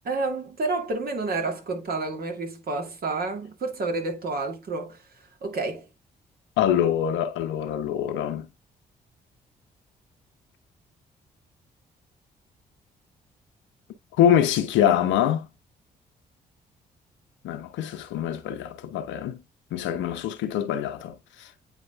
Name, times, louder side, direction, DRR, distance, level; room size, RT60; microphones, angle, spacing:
voice 1, 0.0-5.0 5.4-5.9, right 3 dB, 45° right, 2.5 m, -29 dB
voice 2, 6.6-8.5 14.2-15.5 17.4-19.4 19.7-21.5, left 10 dB, 65° left, 1.2 m, -24 dB
9.2 x 5.0 x 2.3 m
figure-of-eight pair, 40°, 21 cm